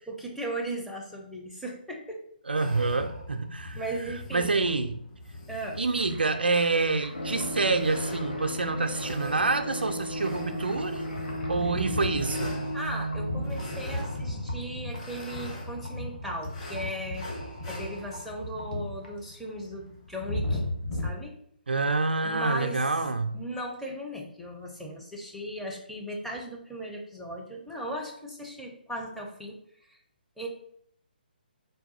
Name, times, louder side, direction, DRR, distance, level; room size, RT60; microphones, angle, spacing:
voice 1, 0.1-2.2 3.7-4.5 5.5-5.8 12.7-17.3 17.7-20.6 21.0-21.3 22.2-22.8 23.3-29.6 29.8-30.0 30.4-30.5, right 1 dB, ahead, -3 dB, 0.5 m, -37 dB
voice 2, 2.5-3.8 4.3-5.0 5.8-11.1 11.5-12.6 21.7-23.3, right 3 dB, 75° right, 5 dB, 0.3 m, -27 dB
sound 1, 2.6-21.1, left 1 dB, 35° left, 0.9 m, -37 dB
sound 2, 5.9-19.5, left 1 dB, 70° left, 1.1 m, -49 dB
sound 3, 7.1-15.7 15.9-16.0, equal, 85° left, 0.5 m, -36 dB
3.5 x 2.2 x 4.0 m, 0.68 s
figure-of-eight pair, 135°, 5 cm